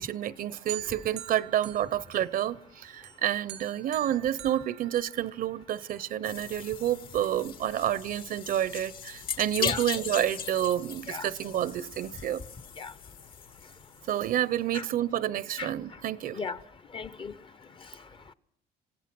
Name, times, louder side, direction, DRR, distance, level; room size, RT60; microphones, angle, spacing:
voice 1, 0.0-12.4 14.1-16.4, right 11 dB, 55° right, 0.7 m, -29 dB
sound 1, 0.7-2.6 3.0-5.6, right 15 dB, 85° right, 0.8 m, -44 dB
sound 2, 6.2-14.4, left 7 dB, 60° left, 2.4 m, -39 dB
voice 2, 16.9-17.5 17.8-18.1, left 4 dB, 30° left, 0.8 m, -36 dB
27.5 x 16.0 x 6.1 m
cardioid pair, 110°, 17 cm